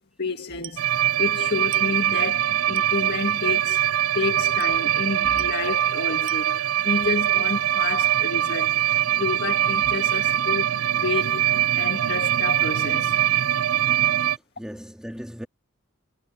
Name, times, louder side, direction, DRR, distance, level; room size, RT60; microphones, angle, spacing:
voice 1, 0.2-0.9 1.2-3.9 4.1-10.7 10.9-13.2, left 3 dB, 50° left, 1.9 m, -30 dB
Glass, 0.6-1.0 1.7-2.1 2.8-3.1 3.7-4.1 4.6-5.0 5.4-5.7 6.3-6.7, right 12 dB, 65° right, 7.5 m, -45 dB
sound 1, 0.8-14.4, right 12 dB, 85° right, 0.5 m, -23 dB
voice 2, 14.3-15.5, equal, 5° right, 3.4 m, -38 dB
head